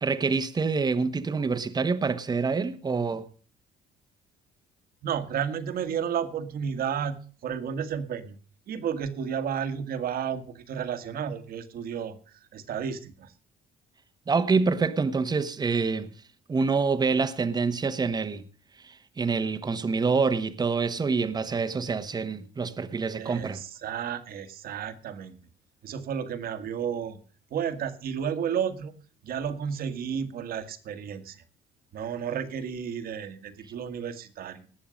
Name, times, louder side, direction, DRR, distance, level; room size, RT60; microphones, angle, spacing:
voice 1, 0.0-3.2 14.3-16.1 16.5-18.4 18.8-23.6, right 4 dB, 25° right, 1.2 m, -26 dB
voice 2, 5.0-8.4 8.7-13.3 23.2-25.4 25.8-27.2 27.5-28.9 29.2-31.4 31.9-34.7, right 8 dB, 60° right, 1.7 m, -32 dB
19.0 x 7.2 x 5.1 m
cardioid pair, 110°, 17 cm